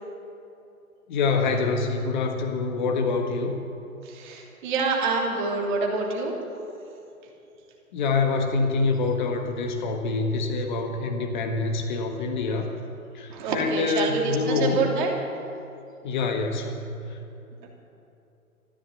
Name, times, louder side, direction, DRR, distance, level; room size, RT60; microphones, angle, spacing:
voice 1, 1.1-3.5 7.9-12.7 13.1-14.8 16.0-17.2, left 4 dB, 30° left, 4 dB, 1.5 m, -26 dB
voice 2, 4.0-6.4 13.3-15.1, right 4 dB, 35° right, 0 dB, 3.0 m, -26 dB
14.0 x 12.5 x 8.2 m, 2.9 s
figure-of-eight pair, 135°, 43 cm